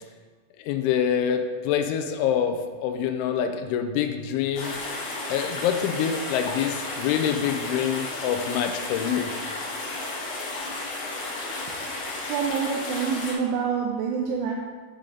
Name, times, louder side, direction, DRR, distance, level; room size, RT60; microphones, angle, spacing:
voice 1, 0.6-2.6 2.8-4.8 5.3-9.3, left 8 dB, 85° left, 7 dB, 2.9 m, -26 dB
sound 1, 4.6-13.3, left 2 dB, 65° left, 2.9 m, -33 dB
voice 2, 12.3-14.5, right 6 dB, 85° right, -1 dB, 2.5 m, -26 dB
8.9 x 5.2 x 3.7 m, 1.4 s
omnidirectional pair, 5.5 m